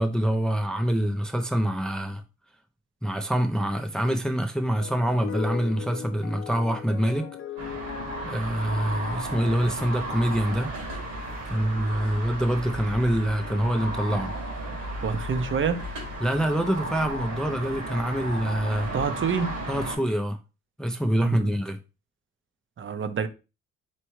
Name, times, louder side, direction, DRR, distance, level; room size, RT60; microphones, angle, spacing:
voice 1, 0.0-2.2 3.0-7.3 8.2-10.7 11.5-14.3 16.2-18.9 19.7-20.4 20.8-21.8, equal, ahead, 0.5 m, -25 dB
sound 1, 4.8-9.7, left 8 dB, 45° left, 0.7 m, -38 dB
sound 2, 7.6-20.0, right 1 dB, 85° right, 2.6 m, -34 dB
voice 2, 15.0-15.9 18.9-19.6 21.2-21.5 22.8-23.3, right 6 dB, 40° right, 0.7 m, -27 dB
4.4 x 3.4 x 3.0 m
cardioid pair, 90°, 30 cm